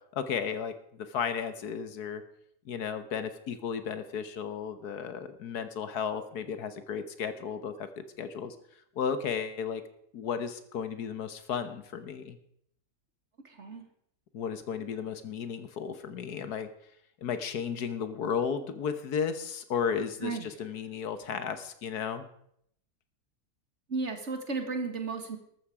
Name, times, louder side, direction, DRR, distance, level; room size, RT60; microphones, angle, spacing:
voice 1, 0.1-2.2 2.6-8.5 8.9-9.8 10.1-12.4 14.3-16.7 17.2-22.3, left 7 dB, 80° left, 11 dB, 1.7 m, -34 dB
voice 2, 13.4-13.8 20.2-20.5 23.9-25.4, right 4 dB, 50° right, 6 dB, 2.0 m, -34 dB
13.5 x 13.0 x 4.9 m, 0.70 s
omnidirectional pair, 1.6 m